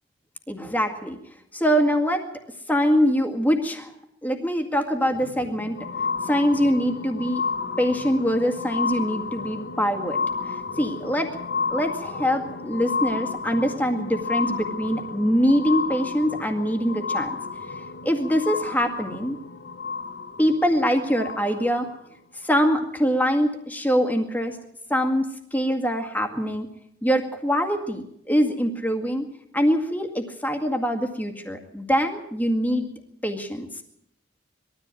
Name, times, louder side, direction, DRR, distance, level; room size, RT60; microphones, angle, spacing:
voice 1, 0.5-1.2 1.5-2.2 2.7-3.9 4.2-5.8 6.2-7.4 7.8-10.2 10.4-11.3 11.7-17.4 18.0-19.4 20.4-21.9 22.4-24.6 24.9-26.7 27.0-29.3 29.5-32.9 33.2-33.8, equal, 10° left, 5 dB, 2.0 m, -23 dB
sound 1, 5.0-21.9 22.6-22.7, left 4 dB, 60° left, 1.6 m, -32 dB
21.0 x 13.5 x 9.1 m, 0.75 s
head